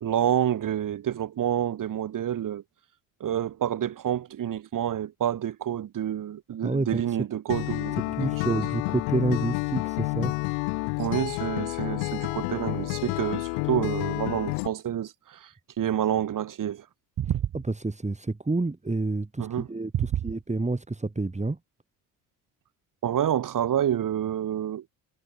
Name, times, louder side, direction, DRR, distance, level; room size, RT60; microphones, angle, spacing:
voice 1, 0.0-2.6 3.2-8.6 11.0-16.9 17.2-17.4 19.4-19.7 19.9-20.2 23.0-24.8, right 10 dB, 45° right, 1.7 m, -28 dB
voice 2, 6.6-7.2 8.2-10.3 17.5-21.6, right 2 dB, 15° right, 5.7 m, -29 dB
Acoustic guitar, 7.5-14.7, left 40 dB or more, 85° left, 4.4 m, -29 dB
supercardioid pair, 70°, 43 cm